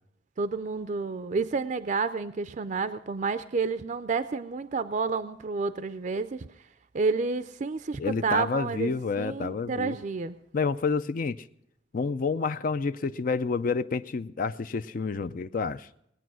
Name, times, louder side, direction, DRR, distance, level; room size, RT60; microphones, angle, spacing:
voice 1, 0.4-6.5 6.9-10.4, right 4 dB, 45° right, 12 dB, 0.5 m, -30 dB
voice 2, 8.0-10.0 10.5-11.4 11.9-15.9, left 4 dB, 50° left, 12 dB, 0.4 m, -29 dB
19.5 x 9.2 x 6.2 m, 0.78 s
head